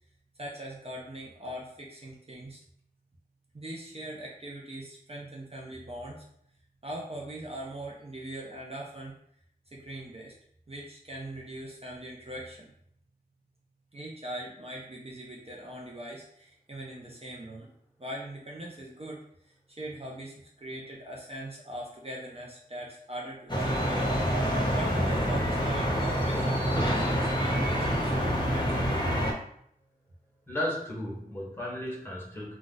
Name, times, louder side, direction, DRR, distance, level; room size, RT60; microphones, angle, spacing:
voice 1, 0.4-2.6 3.5-6.2 6.8-9.1 9.7-10.3 10.7-12.7 13.9-17.7 18.0-19.2 19.7-24.1 24.7-29.0, right 1 dB, 40° right, -3 dB, 0.6 m, -41 dB
sound 1, 23.5-29.3, equal, 30° left, 0.9 m, -27 dB
voice 2, 30.5-32.6, left 1 dB, 15° left, -4 dB, 1.3 m, -34 dB
2.4 x 2.4 x 3.9 m, 0.69 s
wide cardioid pair, 40°, 16 cm